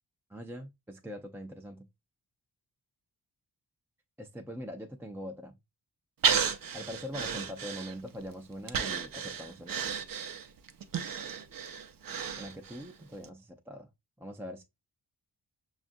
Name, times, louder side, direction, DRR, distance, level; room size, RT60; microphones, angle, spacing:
voice 1, 0.3-1.9 4.2-5.6 6.7-9.8 12.4-13.9 14.2-14.6, equal, 5° right, 0.3 m, -42 dB
Breathing, 6.2-8.2 8.7-12.9 13.2-13.3, right 7 dB, 55° right, 0.5 m, -33 dB
6.0 x 2.4 x 2.5 m
wide cardioid pair, 110°, 41 cm